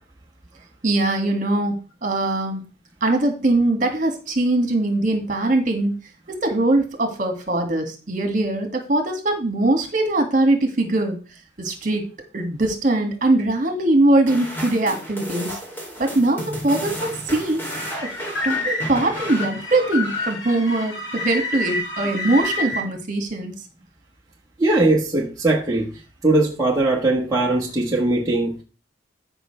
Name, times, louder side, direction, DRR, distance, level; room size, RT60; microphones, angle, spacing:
voice 1, 0.8-2.6 3.0-5.9 6.3-11.2 11.6-12.1 12.3-15.6 16.0-17.6 18.0-18.1 18.4-23.5, right 2 dB, 40° right, 2.1 m, -21 dB
sound 1, 14.3-20.8, equal, 10° left, 3.0 m, -34 dB
sound 2, 17.7-22.8, left 2 dB, 70° left, 2.8 m, -28 dB
voice 2, 24.6-28.6, right 2 dB, 20° right, 1.4 m, -20 dB
14.0 x 5.6 x 3.3 m
head